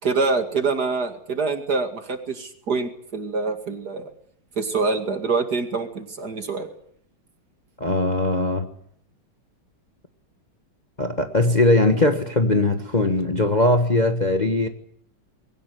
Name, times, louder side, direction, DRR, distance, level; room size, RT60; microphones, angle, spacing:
voice 1, 0.0-4.1 4.6-6.7, right 4 dB, 50° right, 2.8 m, -25 dB
voice 2, 7.8-8.7 11.0-14.7, left 2 dB, 25° left, 1.4 m, -20 dB
21.5 x 17.5 x 9.5 m
omnidirectional pair, 2.3 m